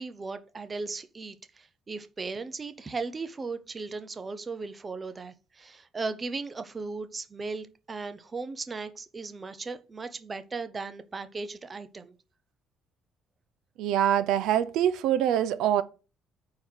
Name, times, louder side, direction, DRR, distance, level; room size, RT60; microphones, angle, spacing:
voice 1, 0.0-12.2, right 4 dB, 20° right, 0.6 m, -37 dB
voice 2, 13.8-15.8, right 10 dB, 75° right, 0.6 m, -24 dB
8.9 x 3.8 x 6.4 m
cardioid pair, 165°, 0 cm